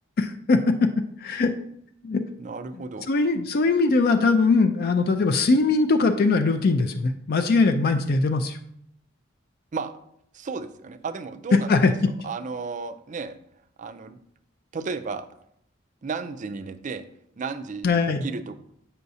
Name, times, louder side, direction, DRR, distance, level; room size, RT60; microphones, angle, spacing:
voice 1, 0.2-1.5 2.0-2.2 3.1-8.6 11.7-11.9 17.8-18.2, left 3 dB, 50° left, 6 dB, 0.4 m, -21 dB
voice 2, 2.4-3.1 9.7-9.9 10.3-13.4 13.8-14.2 14.7-15.3 16.0-17.1 17.4-18.6, right 4 dB, 40° right, 11 dB, 0.4 m, -33 dB
8.1 x 5.6 x 2.7 m, 0.72 s
head